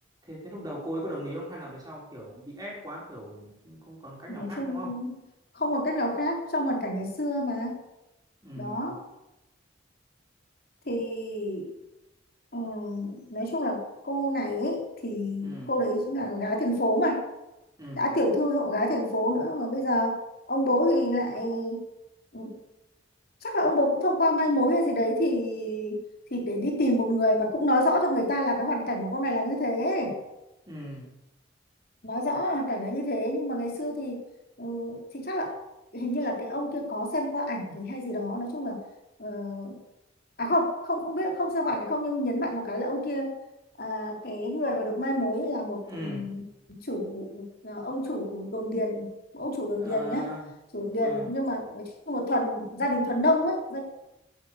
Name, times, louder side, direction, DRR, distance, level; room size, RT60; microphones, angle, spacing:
voice 1, 0.2-4.9 8.4-8.9 15.4-15.7 17.8-18.0 30.7-31.2 45.8-46.3 49.8-50.5 51.0-51.3, equal, 20° right, -3 dB, 5.2 m, -39 dB
voice 2, 4.3-5.1 5.5-7.8 8.6-9.0 10.9-11.7 12.5-17.2 17.9-20.2 20.5-21.8 22.3-22.6 23.4-26.0 26.3-30.2 32.0-34.3 34.6-35.6 35.9-38.8 39.2-39.8 40.4-43.4 43.8-46.4 46.7-49.1 49.3-50.3 50.7-53.8, left 1 dB, 50° left, 1 dB, 3.7 m, -28 dB
13.5 x 10.5 x 6.8 m, 0.94 s
head